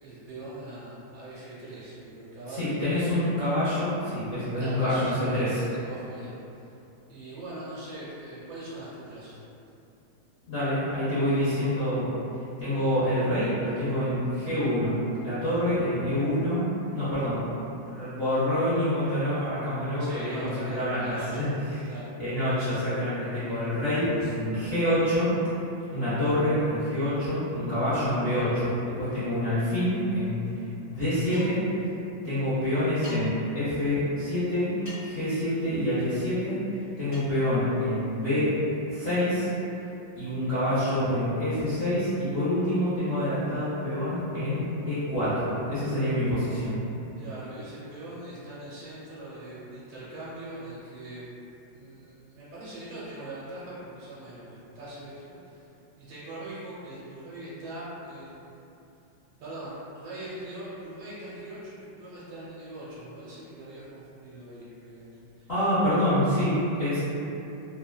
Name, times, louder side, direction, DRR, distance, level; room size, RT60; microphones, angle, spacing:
voice 1, 0.0-3.3 4.6-6.3 7.1-9.4 20.0-21.5 21.8-22.2 24.2-24.3 47.2-51.3 51.7-55.7 56.0-58.5 59.4-65.5, right 1 dB, 80° right, -9 dB, 1.5 m, -41 dB
voice 2, 2.5-5.6 10.5-12.1 12.6-16.6 16.9-17.4 17.8-21.8 22.2-25.3 25.9-28.7 29.0-30.4 30.9-31.6 32.2-34.7 35.0-36.6 37.0-38.5 38.9-39.5 40.2-46.8 65.5-67.0, left 1 dB, 65° left, -14 dB, 0.6 m, -27 dB
sound 1, 31.3-31.7 33.0-33.2 34.9-35.2 37.1-37.3, equal, 45° left, 1.1 m, -43 dB
3.4 x 2.2 x 2.2 m, 2.8 s
omnidirectional pair, 2.1 m